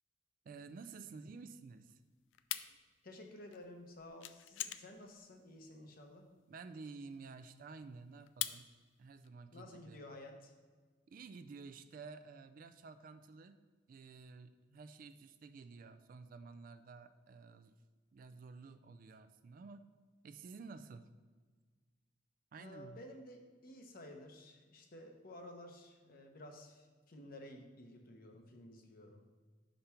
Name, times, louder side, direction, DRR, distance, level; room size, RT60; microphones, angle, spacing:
voice 1, 0.4-2.0 6.5-8.7 9.0-10.0 11.1-13.6 13.9-17.7 18.1-19.9 20.2-21.1 22.5-23.0, right 4 dB, 45° right, 10 dB, 0.3 m, -52 dB
sound 1, 0.6-9.3, left 13 dB, 75° left, 0.3 m, -45 dB
voice 2, 3.0-6.3 9.5-10.5 22.6-29.3, left 1 dB, 50° left, 3 dB, 0.8 m, -53 dB
5.6 x 5.2 x 4.4 m, 1.4 s
head